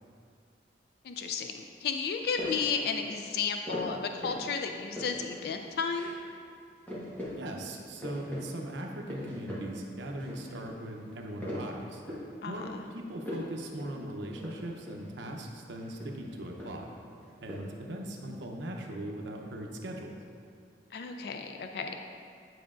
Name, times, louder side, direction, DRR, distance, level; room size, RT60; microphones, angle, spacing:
voice 1, 1.0-6.1 12.4-12.6 20.9-22.0, left 5 dB, 60° left, 5 dB, 0.3 m, -33 dB
sound 1, 2.2-2.8 3.7-4.5 4.7-5.4 5.8-6.2 6.5-6.6 6.9-7.4 7.7-8.4 8.8-9.7 10.0-10.7 11.1-12.3 12.6-12.9 13.2-13.5 13.8-13.9 14.3-15.1 15.8-16.9 17.2-17.6, left 1 dB, 10° left, 1.2 m, -40 dB
voice 2, 7.4-12.0 12.5-16.9 17.4-20.1, right 1 dB, 85° right, 1 dB, 0.7 m, -39 dB
9.3 x 5.0 x 2.5 m, 2.3 s
head